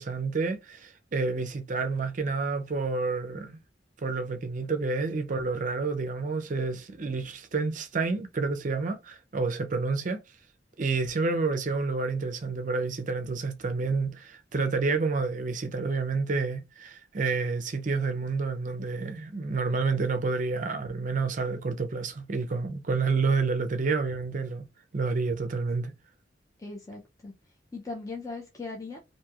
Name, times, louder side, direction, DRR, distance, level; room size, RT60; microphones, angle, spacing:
voice 1, 0.0-3.6 4.0-10.2 10.8-24.6 24.9-25.9, right 4 dB, 45° right, 0.5 m, -29 dB
voice 2, 26.6-27.3 27.7-29.0, left 3 dB, 20° left, 0.4 m, -39 dB
2.9 x 2.6 x 2.3 m
head